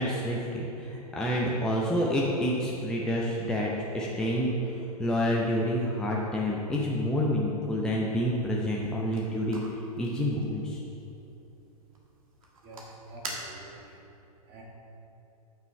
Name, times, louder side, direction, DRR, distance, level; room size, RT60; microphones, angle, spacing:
voice 1, 0.0-9.6 10.0-10.8, equal, 5° left, -3 dB, 0.6 m, -28 dB
sound 1, 8.8-14.0, right 2 dB, 65° right, 1.4 m, -46 dB
voice 2, 12.6-13.9 14.4-14.6, right 1 dB, 35° right, -3 dB, 1.5 m, -47 dB
7.9 x 5.7 x 4.3 m, 2.9 s
figure-of-eight pair, 105°, 19 cm